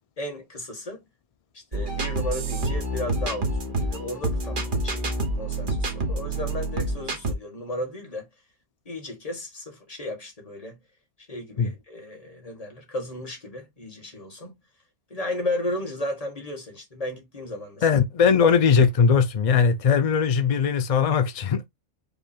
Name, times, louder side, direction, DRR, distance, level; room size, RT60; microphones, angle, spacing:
voice 1, 0.2-1.0 1.5-8.3 8.8-10.8 11.3-14.5 15.1-17.8, left 1 dB, 30° left, 1.6 m, -34 dB
sound 1, 1.7-7.3, right 2 dB, 45° right, 1.2 m, -27 dB
voice 2, 17.8-21.7, left 6 dB, 70° left, 0.3 m, -20 dB
5.3 x 2.2 x 4.3 m
omnidirectional pair, 1.3 m